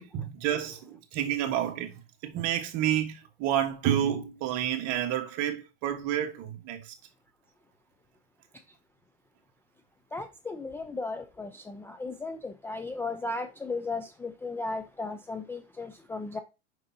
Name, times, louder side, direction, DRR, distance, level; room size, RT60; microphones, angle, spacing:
voice 1, 0.0-2.0 2.2-6.9, right 10 dB, 50° right, 1.4 m, -29 dB
voice 2, 10.1-16.4, left 3 dB, 5° left, 0.3 m, -36 dB
6.5 x 5.4 x 2.8 m
supercardioid pair, 120°, 36 cm